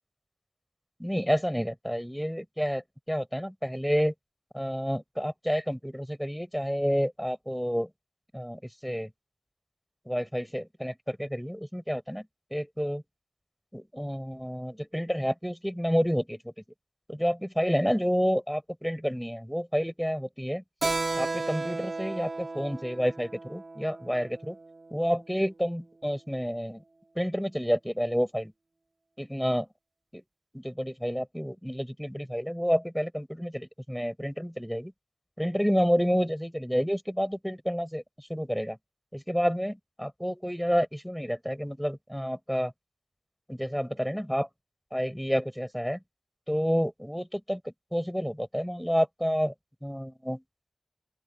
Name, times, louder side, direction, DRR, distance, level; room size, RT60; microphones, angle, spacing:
voice 1, 1.0-4.1 4.5-7.9 8.3-9.1 10.0-13.0 13.7-16.5 17.1-20.6 21.1-24.6 24.9-26.8 27.1-28.5 29.2-29.7 30.1-30.2 30.5-34.9 35.4-38.8 39.1-42.7 43.5-44.5 44.9-46.0 46.5-49.5 49.8-50.4, equal, ahead, 4.8 m, -29 dB
Keyboard (musical), 20.8-24.9, right 3 dB, 50° right, 2.2 m, -34 dB
open air
wide cardioid pair, 90°, 0 cm